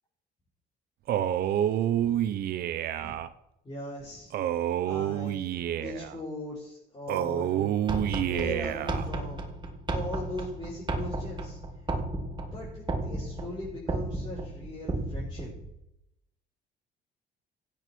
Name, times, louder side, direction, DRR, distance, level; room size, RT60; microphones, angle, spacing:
Male speech man speaking, 1.1-3.3 4.3-6.2 7.1-9.1, right 11 dB, 65° right, 0.9 m, -28 dB
voice 1, 2.0-2.3 3.0-3.2 3.6-4.3 4.8-5.5 5.7-7.7 8.2-9.5 9.9-11.6 12.5-15.5, left 1 dB, 25° left, -6 dB, 5.4 m, -39 dB
sound 1, 7.9-15.7, right 2 dB, 25° right, 1.7 m, -34 dB
16.0 x 8.7 x 4.6 m, 0.82 s
cardioid pair, 110°, 17 cm